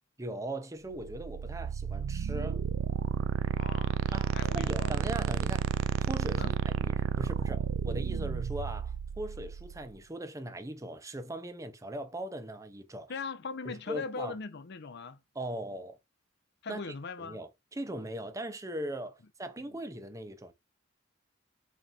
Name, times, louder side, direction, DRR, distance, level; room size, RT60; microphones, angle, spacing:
voice 1, 0.2-2.6 4.1-5.7 6.1-13.1 13.6-14.4 15.3-16.0 16.7-16.9 17.2-20.5, right 1 dB, 15° right, 0.6 m, -39 dB
sound 1, 1.0-9.8, right 7 dB, 70° right, 0.3 m, -32 dB
voice 2, 3.6-4.9 6.4-6.6 13.1-15.2 16.6-17.4, left 4 dB, 55° left, 0.5 m, -40 dB
4.1 x 3.3 x 2.4 m
head